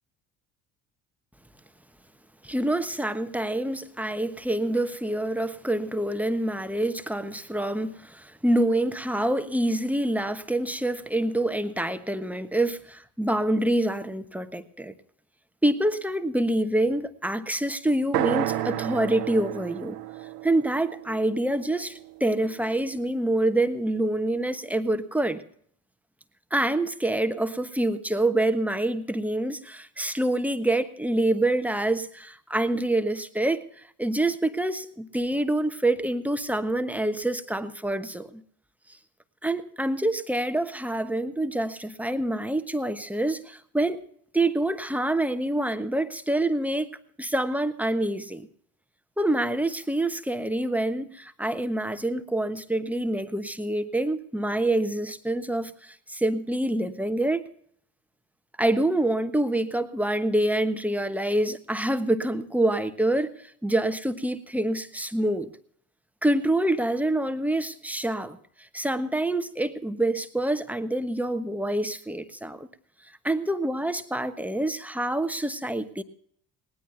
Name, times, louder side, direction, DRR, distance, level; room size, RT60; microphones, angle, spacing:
voice 1, 2.4-14.9 15.6-20.0 20.4-25.4 26.5-38.4 39.4-44.0 44.3-46.9 47.2-48.5 49.2-57.5 58.6-65.5 66.2-68.4 68.7-72.7 73.2-76.0, right 1 dB, 5° right, 10 dB, 1.2 m, -26 dB
sound 1, 18.1-22.1, right 13 dB, 80° right, 1.3 m, -31 dB
19.5 x 18.5 x 2.7 m, 0.62 s
figure-of-eight pair, 60°, 46 cm